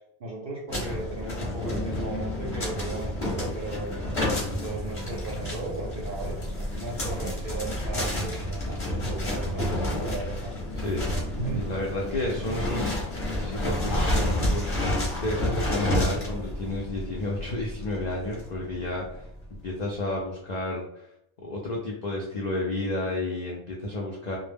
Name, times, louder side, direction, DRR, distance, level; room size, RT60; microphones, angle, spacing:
voice 1, 0.2-3.9 4.6-10.5 11.3-11.6, right 2 dB, 60° right, -2 dB, 0.6 m, -36 dB
sound 1, 0.7-19.4, left 1 dB, 35° left, 0.6 m, -30 dB
voice 2, 11.5-13.2 13.4-14.7 15.2-19.3 19.6-21.1 21.4-24.4, left 1 dB, 75° left, -2 dB, 0.4 m, -31 dB
2.0 x 2.0 x 3.3 m, 0.77 s
omnidirectional pair, 1.3 m